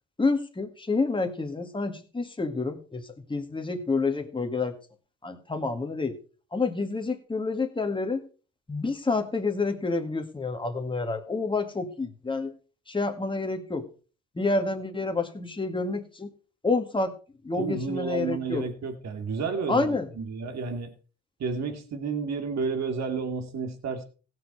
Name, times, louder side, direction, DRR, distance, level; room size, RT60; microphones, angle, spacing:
voice 1, 0.2-4.8 5.2-6.1 6.5-8.2 8.7-12.5 12.9-13.9 14.4-16.3 16.6-17.1 17.4-18.7 19.7-20.1, left 3 dB, 15° left, 5 dB, 2.0 m, -28 dB
voice 2, 17.6-20.9 21.4-24.0, right 5 dB, 60° right, 7 dB, 2.4 m, -31 dB
16.5 x 6.7 x 4.8 m, 0.37 s
cardioid pair, 90°, 30 cm